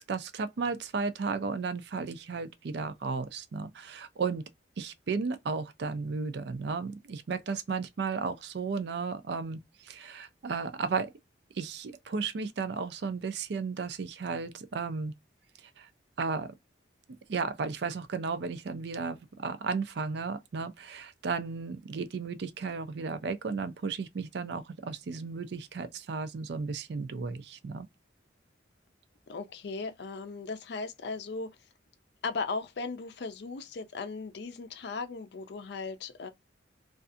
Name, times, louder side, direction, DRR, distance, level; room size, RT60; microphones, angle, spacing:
voice 1, 0.0-4.4 4.8-11.1 11.6-15.1 15.8-15.9 16.2-16.5 17.3-27.9, right 4 dB, 60° right, 0.4 m, -34 dB
voice 2, 29.3-31.7 32.2-36.3, left 4 dB, 60° left, 0.4 m, -37 dB
2.5 x 2.4 x 2.4 m
head